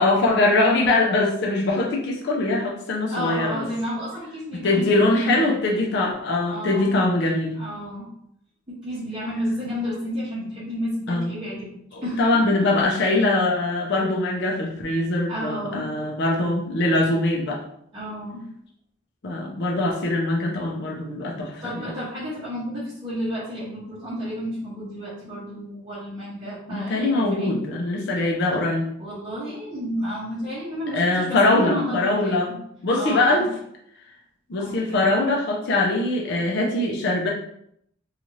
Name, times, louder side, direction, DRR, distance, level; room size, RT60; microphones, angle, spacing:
voice 1, 0.0-3.7 4.6-7.6 11.1-11.3 11.9-17.6 19.2-21.9 26.7-28.9 30.9-32.5 32.8-33.5 34.5-37.3, left 2 dB, 55° left, -1 dB, 0.5 m, -22 dB
voice 2, 3.1-5.6 6.5-7.0 7.5-8.1 8.7-11.7 12.0-12.8 15.3-15.9 17.9-18.4 21.6-27.6 29.0-32.6 33.0-33.5 34.6-35.0, equal, 25° right, -10 dB, 0.8 m, -31 dB
2.7 x 2.4 x 3.0 m, 0.72 s
head